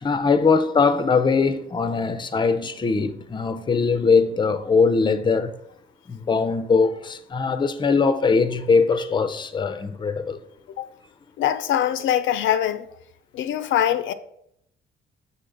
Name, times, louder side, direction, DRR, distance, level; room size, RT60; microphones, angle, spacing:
voice 1, 0.0-5.5 6.1-10.4, left 4 dB, 25° left, 0.5 m, -21 dB
voice 2, 11.4-12.9 13.3-14.1, left 11 dB, 75° left, 0.4 m, -23 dB
6.7 x 4.1 x 3.8 m
cardioid pair, 90°, 20 cm